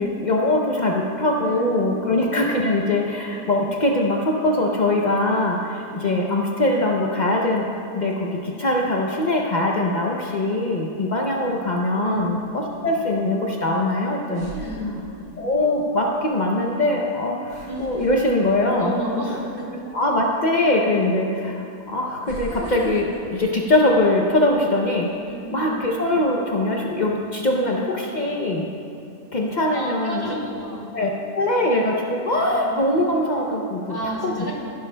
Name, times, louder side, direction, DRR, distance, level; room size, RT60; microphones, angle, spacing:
voice 1, 0.0-7.7 7.9-14.5 15.4-18.9 19.9-25.1 25.5-28.7 29.3-30.4 30.9-34.0 34.2-34.3, left 1 dB, 75° left, -1 dB, 0.4 m, -22 dB
voice 2, 1.4-2.1 12.0-12.3 14.6-15.0 18.7-19.7 25.2-25.9 27.6-27.7 29.7-30.9 32.2-32.7 33.9-34.5, equal, 15° right, -5 dB, 2.2 m, -31 dB
sound 1, 11.2-11.7 13.6-13.7 14.3-15.5 15.9-16.1 17.4-19.3 19.7-19.9 20.9-21.0 22.2-24.5 24.9-25.2, left 1 dB, 40° right, 2.7 m, -37 dB
17.0 x 10.5 x 2.2 m, 2.7 s
omnidirectional pair, 1.8 m